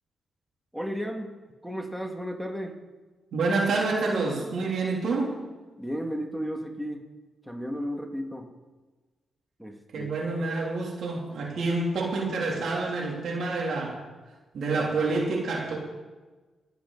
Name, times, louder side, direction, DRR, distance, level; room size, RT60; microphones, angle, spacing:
voice 1, 0.7-1.3 1.6-2.8 5.8-7.0 7.4-8.5 9.6-10.1, equal, ahead, 2 dB, 2.2 m, -33 dB
voice 2, 3.3-5.4 9.9-14.0 14.5-15.8, right 3 dB, 70° right, -1 dB, 3.3 m, -28 dB
23.0 x 8.2 x 4.1 m, 1.3 s
supercardioid pair, 60°, 0 cm